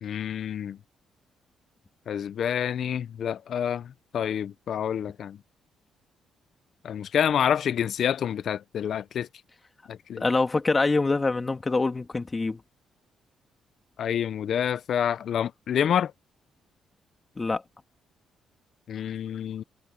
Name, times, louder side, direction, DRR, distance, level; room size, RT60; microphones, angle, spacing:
voice 1, 0.0-0.8 2.1-5.4 6.8-9.3 9.9-10.2 14.0-16.1 18.9-19.6, left 9 dB, 65° left, 0.8 m, -28 dB
voice 2, 10.2-12.6 17.4-17.6, left 3 dB, 25° left, 2.3 m, -25 dB
cardioid pair, 90°, 0 cm